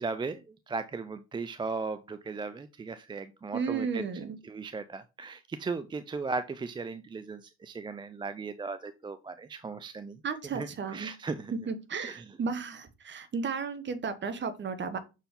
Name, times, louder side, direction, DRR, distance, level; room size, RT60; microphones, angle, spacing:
voice 1, 0.0-4.1 4.4-10.2 10.5-11.5 12.0-12.4, right 4 dB, 15° right, 12 dB, 0.4 m, -37 dB
voice 2, 3.5-4.4 10.2-11.1 11.5-15.0, right 5 dB, 35° right, 10 dB, 1.4 m, -34 dB
6.6 x 4.6 x 3.7 m, 0.28 s
hypercardioid pair, 75°, 31 cm